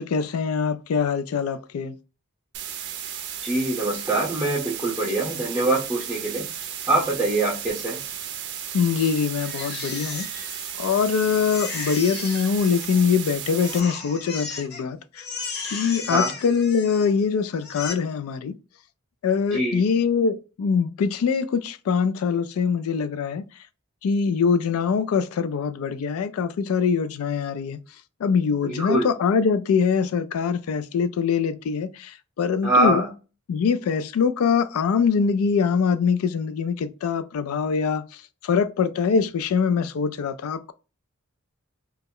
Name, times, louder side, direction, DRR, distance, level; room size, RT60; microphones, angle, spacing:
voice 1, 0.0-1.9 8.7-10.3 10.8-15.2 15.7-18.5 19.2-23.4 24.0-27.8 28.2-33.0 33.5-40.7, left 6 dB, 80° left, 0.3 m, -23 dB
sound 1, 2.5-13.8, right 9 dB, 55° right, 0.4 m, -34 dB
voice 2, 3.4-6.4 6.9-8.0 16.1-16.3 19.5-19.8 28.6-29.1 32.6-33.1, right 2 dB, 10° right, 0.6 m, -23 dB
Crying sobbing, 9.4-11.1 11.5-13.3 13.6-14.8 15.1-17.2 17.6-17.9, left 4 dB, 50° left, 0.6 m, -35 dB
2.3 x 2.0 x 3.5 m
head